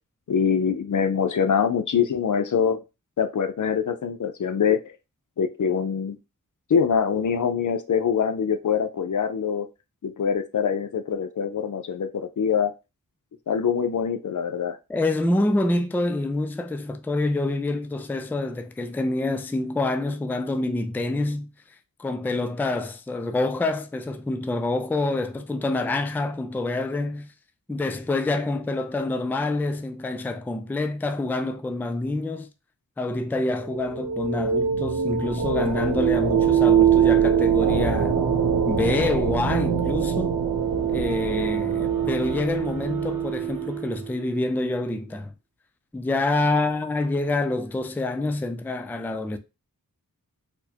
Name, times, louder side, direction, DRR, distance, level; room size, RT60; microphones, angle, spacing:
voice 1, 0.3-2.8 3.2-4.8 5.4-6.2 6.7-9.7 10.0-12.7 13.5-14.8, left 7 dB, 60° left, 0.5 m, -24 dB
voice 2, 14.9-21.5 22.0-27.3 27.7-32.5 33.0-38.2 38.7-40.4 40.9-45.3 45.9-49.4, left 2 dB, 5° left, 0.3 m, -27 dB
sound 1, 33.6-44.2, right 7 dB, 80° right, 0.7 m, -23 dB
4.3 x 2.1 x 2.8 m
cardioid pair, 45°, 34 cm